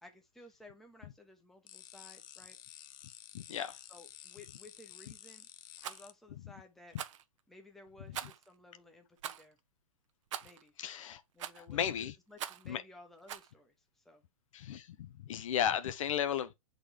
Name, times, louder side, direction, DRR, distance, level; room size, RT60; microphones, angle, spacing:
voice 1, 0.0-2.6 3.9-5.5 5.8-7.0 7.5-9.6 10.4-10.7 11.3-14.2, left 2 dB, ahead, 0.9 m, -57 dB
sound 1, 1.7-6.1, left 13 dB, 40° left, 0.6 m, -52 dB
voice 2, 3.3-3.8 8.1-8.2 10.8-11.2 11.6-12.1 12.6-12.8 14.5-16.5, left 9 dB, 65° left, 0.9 m, -35 dB
Rattle, 5.8-6.0 6.9-7.2 8.1-8.5 9.2-9.4 10.3-10.6 11.4-11.7 12.4-12.7 13.3-13.5, right 11 dB, 60° right, 0.8 m, -42 dB
6.6 x 4.1 x 3.4 m
hypercardioid pair, 160°, 18 cm